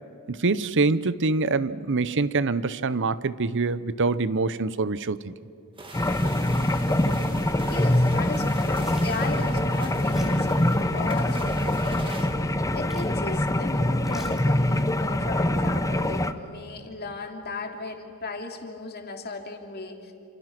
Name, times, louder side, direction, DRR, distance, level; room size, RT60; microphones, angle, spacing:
voice 1, 0.3-5.3, right 3 dB, 55° right, 16 dB, 0.8 m, -25 dB
sound 1, 5.8-12.3, right 2 dB, 25° right, 2.7 m, -42 dB
sound 2, 5.9-16.3, left 1 dB, 15° left, 0.9 m, -24 dB
voice 2, 7.7-20.1, left 3 dB, 45° left, 3 dB, 2.9 m, -36 dB
sound 3, 8.8-9.3 10.1-10.5 11.1-12.3 12.9-13.4 13.7-14.9 15.2-15.3, equal, ahead, 3.1 m, -43 dB
29.0 x 27.5 x 6.1 m, 2.7 s
head